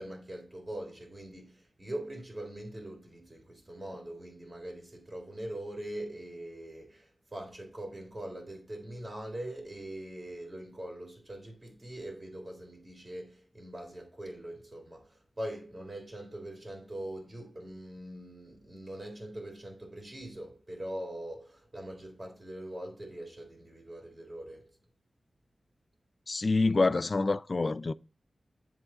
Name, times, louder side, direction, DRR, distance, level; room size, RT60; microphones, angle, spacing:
voice 1, 0.0-24.7, right 1 dB, 25° right, 2.8 m, -42 dB
voice 2, 26.3-27.9, left 3 dB, 45° left, 0.3 m, -27 dB
10.5 x 3.7 x 4.0 m
wide cardioid pair, 115°, 0 cm